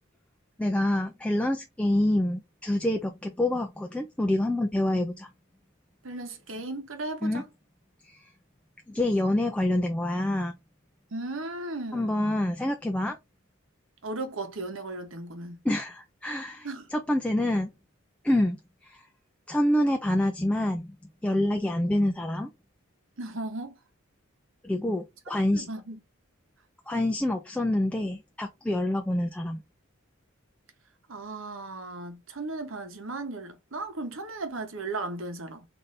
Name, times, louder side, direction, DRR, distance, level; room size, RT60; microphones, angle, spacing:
voice 1, 0.6-5.3 7.2-7.4 8.0-8.3 8.9-10.6 11.9-13.2 15.6-17.7 18.2-19.1 19.5-21.0 21.2-22.5 24.6-25.7 26.9-29.6, left 1 dB, 5° left, 0.3 m, -27 dB
voice 2, 6.0-7.4 11.1-12.3 14.0-15.6 16.6-16.9 23.2-23.8 25.3-26.0 31.1-35.6, right 2 dB, 70° right, 1.0 m, -36 dB
4.0 x 2.7 x 3.2 m
head